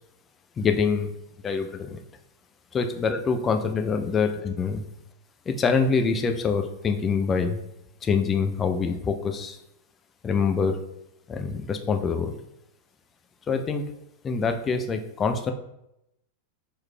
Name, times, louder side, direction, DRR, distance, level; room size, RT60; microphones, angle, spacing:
voice 1, 0.6-1.1 1.4-2.0 2.7-4.8 5.5-7.6 8.0-9.6 10.2-10.8 11.3-12.3 13.5-13.8 14.2-15.5, left 5 dB, 20° left, 6 dB, 0.4 m, -25 dB
4.9 x 3.1 x 2.2 m, 0.84 s
figure-of-eight pair, 90°, 0 cm